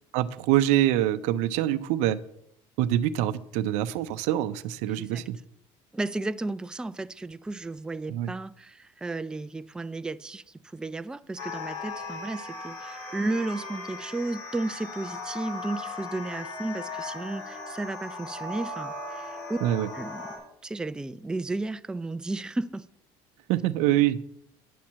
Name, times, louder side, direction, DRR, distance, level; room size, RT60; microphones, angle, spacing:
voice 1, 0.1-2.2 2.8-5.4 8.1-8.3 19.6-19.9 23.5-24.2, right 13 dB, 75° right, 0.6 m, -25 dB
voice 2, 4.9-5.2 5.9-19.6 19.9-20.2 20.6-22.9, right 2 dB, 5° right, 0.4 m, -33 dB
sound 1, 11.4-20.4, left 3 dB, 65° left, 4.1 m, -38 dB
10.0 x 4.3 x 7.3 m
supercardioid pair, 110°, 12 cm